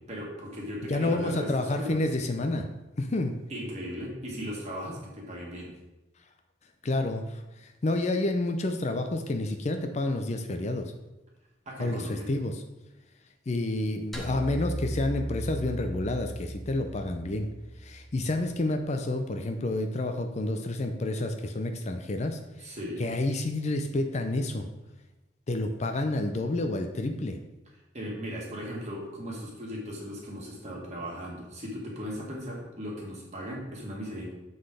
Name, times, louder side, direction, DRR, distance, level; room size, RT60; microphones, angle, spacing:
voice 1, 0.1-2.0 3.5-5.7 11.7-12.3 22.6-23.1 27.9-34.3, equal, 35° right, -3 dB, 1.9 m, -37 dB
voice 2, 0.9-2.7 3.0-3.4 6.8-10.9 11.8-12.6 13.5-17.5 17.8-24.7 25.5-27.4, left 2 dB, 35° left, 6 dB, 0.5 m, -29 dB
sound 1, 14.1-18.5, right 1 dB, ahead, 1.0 m, -37 dB
7.7 x 4.0 x 4.9 m, 1.0 s
head